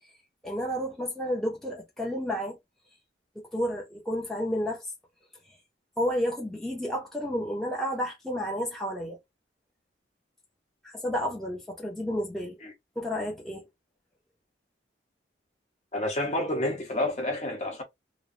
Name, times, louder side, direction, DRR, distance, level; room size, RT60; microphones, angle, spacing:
voice 1, 0.4-2.6 3.5-4.9 6.0-9.2 10.8-12.6 13.0-13.7, equal, ahead, 0.7 m, -31 dB
voice 2, 15.9-17.8, left 1 dB, 40° left, 0.9 m, -29 dB
3.0 x 2.2 x 2.6 m
head